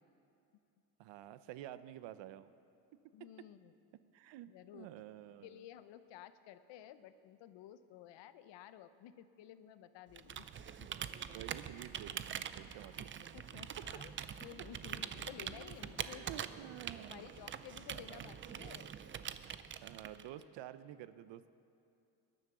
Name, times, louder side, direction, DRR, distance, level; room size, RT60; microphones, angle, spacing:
voice 1, 1.0-2.5 4.1-5.6 11.3-13.1 13.5-13.6 13.9-14.0 16.0-17.3 17.9-18.3 19.8-21.5, right 12 dB, 85° right, 14 dB, 0.7 m, -50 dB
voice 2, 3.1-3.7 4.4-4.9 5.4-10.5 10.8-10.9 13.0-14.1 14.4-16.4 17.0-19.0, left 11 dB, 85° left, 12 dB, 0.9 m, -54 dB
Computer keyboard, 10.1-20.4, right 8 dB, 30° right, 0.4 m, -44 dB
20.5 x 11.0 x 6.1 m, 2.6 s
cardioid pair, 150°, 42 cm